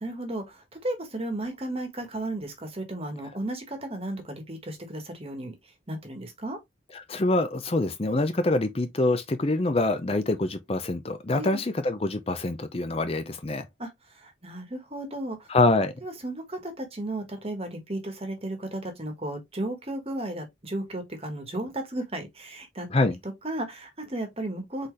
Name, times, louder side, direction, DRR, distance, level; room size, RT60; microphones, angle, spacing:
voice 1, 0.0-5.5 5.9-6.6 11.3-11.6 13.8-13.9 14.2-15.4 16.0-22.9 23.4-24.9, right 1 dB, 30° right, 1.3 m, -34 dB
voice 2, 6.9-13.7 15.5-15.9 22.9-23.2, left 2 dB, 30° left, 0.5 m, -25 dB
4.1 x 4.0 x 3.2 m
head